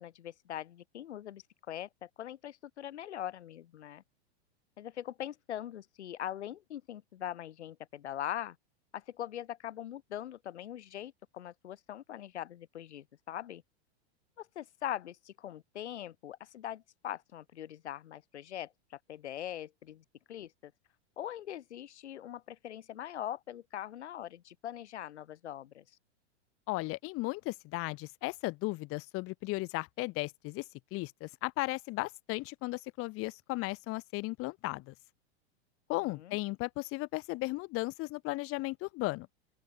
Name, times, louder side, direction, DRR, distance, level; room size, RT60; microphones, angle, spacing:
voice 1, 0.0-4.0 4.8-8.6 8.9-13.6 14.4-20.7 21.2-26.0 36.1-36.4, left 11 dB, 85° left, 4.9 m, -42 dB
voice 2, 26.7-30.6 30.9-34.9 35.9-39.3, left 22 dB, 40° left, 6.2 m, -35 dB
open air
supercardioid pair, 135°, 33 cm